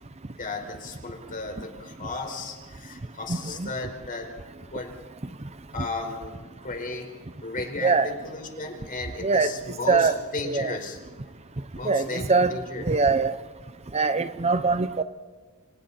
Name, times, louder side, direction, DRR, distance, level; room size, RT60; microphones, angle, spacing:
voice 1, 0.4-4.3 4.7-4.9 5.7-7.1 7.4-11.0 11.7-12.9, left 3 dB, 40° left, 3 dB, 4.9 m, -35 dB
voice 2, 3.3-3.7 7.8-8.1 9.2-9.5 9.9-10.2 10.4-10.8 11.8-12.6 12.8-13.4 13.9-15.0, right 4 dB, 30° right, 12 dB, 0.7 m, -22 dB
28.5 x 27.0 x 4.4 m, 1.4 s
head